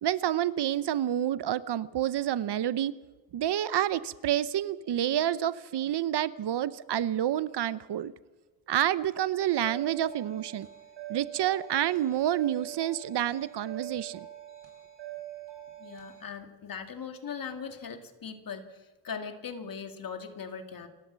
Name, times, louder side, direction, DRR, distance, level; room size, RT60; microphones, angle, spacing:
voice 1, 0.0-3.0 3.3-8.1 8.7-10.7 11.1-14.3, right 11 dB, 65° right, 16 dB, 0.8 m, -28 dB
sound 1, 9.6-16.2, right 14 dB, 80° right, 6.3 m, -44 dB
voice 2, 15.8-20.9, left 6 dB, 50° left, 6 dB, 2.3 m, -40 dB
28.5 x 12.0 x 7.5 m, 1.2 s
wide cardioid pair, 135°, 45 cm